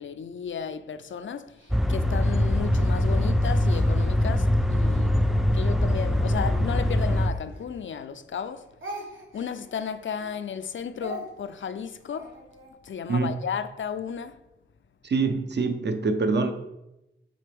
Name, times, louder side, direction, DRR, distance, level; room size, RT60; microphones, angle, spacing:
voice 1, 0.0-1.6 1.9-8.7 9.3-12.4 12.8-14.4, left 7 dB, 75° left, 0.4 m, -34 dB
Speech, 1.6-4.7 5.2-8.1 8.3-12.7, right 1 dB, 80° right, 1.4 m, -44 dB
sound 1, 1.7-7.3, left 1 dB, ahead, 0.3 m, -23 dB
voice 2, 15.0-16.5, right 4 dB, 60° right, 0.6 m, -25 dB
7.6 x 3.8 x 3.4 m
wide cardioid pair, 90°, 20 cm